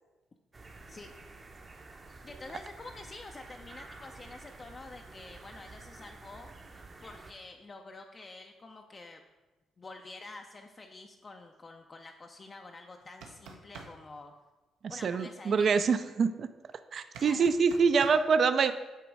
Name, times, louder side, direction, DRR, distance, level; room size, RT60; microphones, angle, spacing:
sound 1, 0.5-7.3, right 3 dB, 30° right, 0.7 m, -50 dB
voice 1, 2.2-6.5 7.0-9.2 9.8-14.4 14.9-15.9 17.2-17.5, left 3 dB, 35° left, 3 dB, 0.4 m, -48 dB
sound 2, 13.0-13.9 17.1-18.2, right 5 dB, 90° right, 0.7 m, -46 dB
voice 2, 15.0-16.5 16.9-18.7, right 5 dB, 55° right, 11 dB, 0.3 m, -25 dB
8.1 x 3.0 x 4.7 m, 1.2 s
cardioid pair, 90°, 0 cm